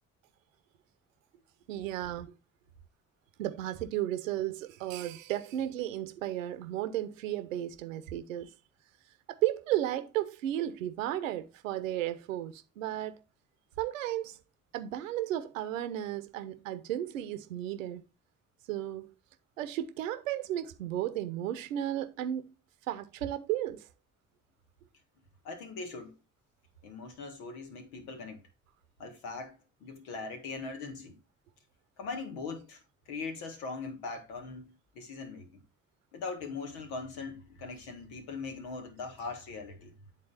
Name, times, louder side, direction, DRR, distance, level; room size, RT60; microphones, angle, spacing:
voice 1, 1.7-2.3 3.4-8.5 9.3-13.2 13.8-14.4 14.7-18.0 18.7-19.1 19.6-22.5 22.9-23.9, right 12 dB, 80° right, 1.0 m, -34 dB
voice 2, 25.4-26.2 26.8-28.4 29.0-31.2 32.0-32.8 33.1-35.6 36.1-39.9, left 4 dB, 70° left, 1.7 m, -41 dB
9.9 x 4.1 x 4.1 m
figure-of-eight pair, 45°, 39 cm